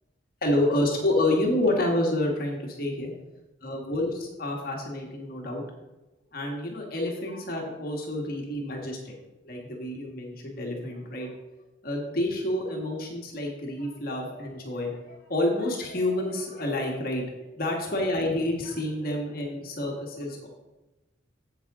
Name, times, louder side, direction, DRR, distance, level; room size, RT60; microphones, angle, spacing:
voice 1, 0.4-3.2 3.6-5.6 6.3-9.1 9.4-11.3 11.8-17.2 17.6-20.5, left 1 dB, 50° left, 0 dB, 1.4 m, -28 dB
8.8 x 7.6 x 3.6 m, 1.0 s
head